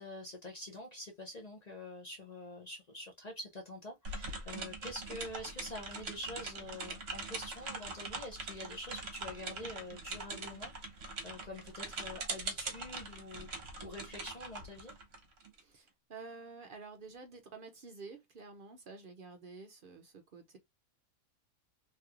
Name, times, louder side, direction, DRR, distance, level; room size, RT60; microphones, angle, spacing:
voice 1, 0.0-10.7 11.2-14.9, left 1 dB, 50° left, 0.5 m, -46 dB
sound 1, 4.0-15.6, right 3 dB, 50° right, 1.0 m, -42 dB
voice 2, 15.5-20.6, right 4 dB, 70° right, 0.5 m, -50 dB
3.2 x 2.9 x 2.4 m
omnidirectional pair, 1.6 m